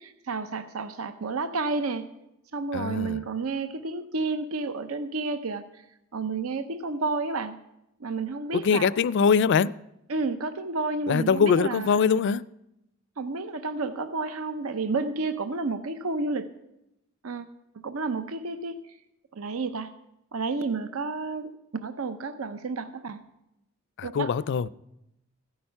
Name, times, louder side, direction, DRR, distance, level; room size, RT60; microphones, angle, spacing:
voice 1, 0.0-2.1 2.5-5.7 6.1-7.6 8.0-8.9 10.1-12.4 13.2-16.5 17.2-17.4 17.8-18.8 19.3-19.9 20.3-23.2 24.0-24.3, right 3 dB, 85° right, 0.7 m, -31 dB
voice 2, 2.7-3.2 8.5-9.7 11.1-12.4 24.0-24.7, left 6 dB, 55° left, 0.3 m, -22 dB
15.0 x 8.8 x 5.6 m
head